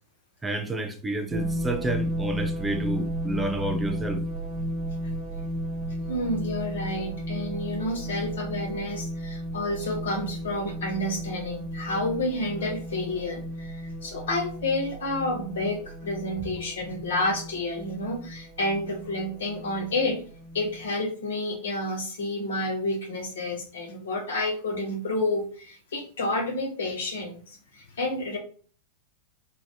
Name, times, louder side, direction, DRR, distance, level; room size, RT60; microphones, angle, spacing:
voice 1, 0.4-4.2, right 1 dB, 10° right, 0.4 m, -30 dB
sound 1, 1.3-20.9, right 1 dB, 35° right, 1.0 m, -34 dB
voice 2, 6.1-20.2 20.5-27.4 27.7-28.4, left 1 dB, 60° left, 0.7 m, -30 dB
2.2 x 2.2 x 2.6 m
figure-of-eight pair, 90°, 0 cm